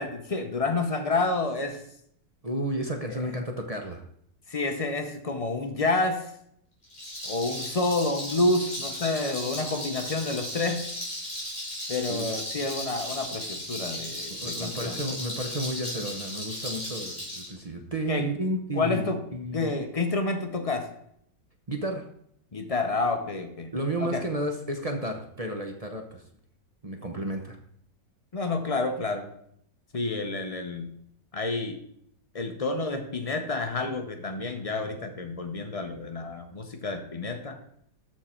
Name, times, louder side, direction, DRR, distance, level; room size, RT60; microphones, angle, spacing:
voice 1, 0.0-1.8 4.5-6.3 7.2-10.9 11.9-15.0 18.1-18.2 18.7-19.2 19.5-20.9 22.5-23.7 24.0-24.2 28.3-29.3 29.9-30.9 31.3-31.8 32.3-37.6, left 3 dB, 50° left, 6 dB, 0.4 m, -29 dB
voice 2, 2.4-4.0 12.0-12.4 14.3-19.8 21.7-22.0 23.7-26.3 26.8-27.6, right 1 dB, 30° right, 3 dB, 0.7 m, -32 dB
Rattle, 6.8-17.5, left 1 dB, 20° left, 4.2 m, -36 dB
13.5 x 4.6 x 4.4 m, 0.69 s
omnidirectional pair, 1.9 m